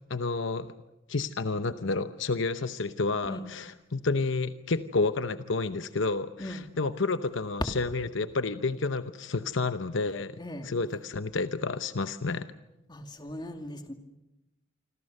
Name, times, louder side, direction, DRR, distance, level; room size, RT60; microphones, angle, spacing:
voice 1, 0.1-0.7 1.1-12.5, left 3 dB, 70° left, 11 dB, 0.9 m, -30 dB
voice 2, 10.4-10.7 12.9-13.9, left 1 dB, 25° left, 5 dB, 2.4 m, -39 dB
26.5 x 26.0 x 6.7 m, 0.94 s
head